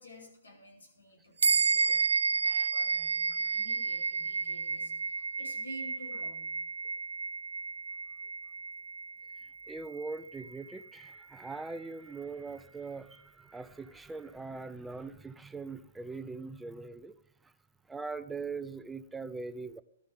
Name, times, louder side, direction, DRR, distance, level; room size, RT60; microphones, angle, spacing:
voice 1, 0.0-6.5, equal, 90° left, -1 dB, 4.9 m, -51 dB
sound 1, 1.4-11.1, right 5 dB, 85° right, 0.6 m, -32 dB
voice 2, 9.7-17.2 17.4-17.5 17.9-19.8, right 4 dB, 5° right, 12 dB, 0.7 m, -41 dB
15.5 x 12.5 x 3.8 m, 0.69 s
hypercardioid pair, 135°, 0 cm